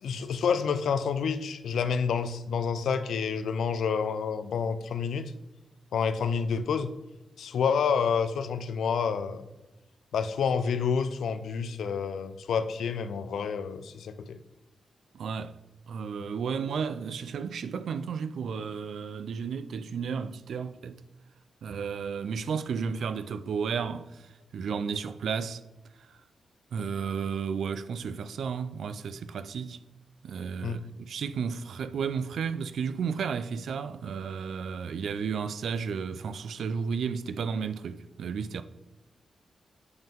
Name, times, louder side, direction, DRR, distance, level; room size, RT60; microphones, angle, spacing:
voice 1, 0.0-5.3 5.9-6.9 7.4-9.5 10.1-14.4 30.6-30.8, left 6 dB, 90° left, 0.4 m, -28 dB
voice 2, 15.1-15.5 15.9-21.0 21.6-25.6 26.0-26.1 26.7-29.8 30.2-38.6, right 6 dB, 75° right, 0.3 m, -33 dB
7.8 x 3.6 x 3.5 m
wide cardioid pair, 140°, 0 cm